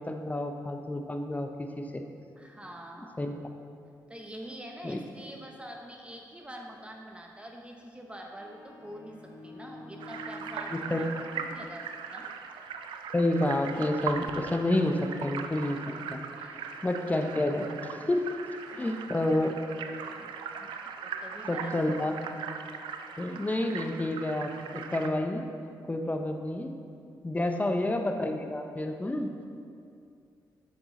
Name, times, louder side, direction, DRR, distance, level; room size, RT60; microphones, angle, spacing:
voice 1, 0.0-2.0 3.2-3.3 4.8-5.0 10.7-11.0 13.1-15.8 16.1-16.2 16.8-18.3 18.7-19.6 20.2-20.3 21.5-22.1 23.2-25.5 25.9-26.7 27.2-29.3, left 1 dB, 20° left, 5 dB, 0.7 m, -29 dB
voice 2, 2.4-3.2 4.1-12.3 16.3-16.8 18.7-19.1 21.0-21.7 22.1-22.2 27.5-27.6, equal, 15° right, 1 dB, 0.9 m, -45 dB
sound 1, 8.3-12.3, left 2 dB, 75° left, 1.6 m, -49 dB
sound 2, 10.0-25.1, right 6 dB, 85° right, 0.4 m, -40 dB
7.3 x 6.2 x 3.8 m, 2.4 s
supercardioid pair, 55°, 8 cm